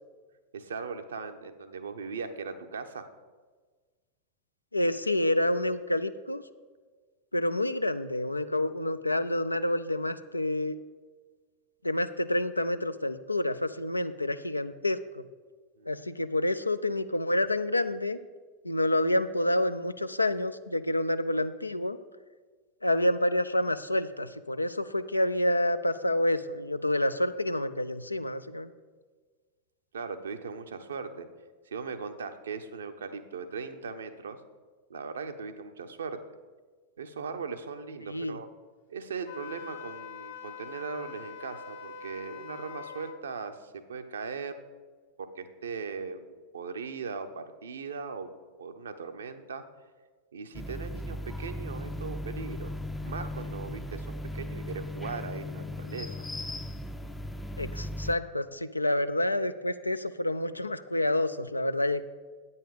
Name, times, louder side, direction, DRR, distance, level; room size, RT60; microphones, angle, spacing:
voice 1, 0.5-3.1 15.8-16.0 29.9-31.3 31.7-34.4 34.9-36.2 37.0-38.5 38.9-44.6 45.2-46.2 46.5-48.3 48.6-49.6 50.3-52.7 53.0-54.1 54.3-56.2, right 5 dB, 70° right, 8 dB, 0.7 m, -39 dB
voice 2, 4.7-6.4 7.3-10.8 11.8-15.2 15.9-18.2 18.6-22.0 22.8-28.7 38.0-38.4 57.6-62.0, left 1 dB, 85° left, 12 dB, 0.4 m, -28 dB
Wind instrument woodwind instrument, 39.2-43.2, left 7 dB, 55° left, 0.8 m, -44 dB
sound 1, 50.5-58.1, left 1 dB, 5° left, 0.5 m, -37 dB
9.0 x 5.5 x 6.8 m, 1.4 s
figure-of-eight pair, 90°, 0 cm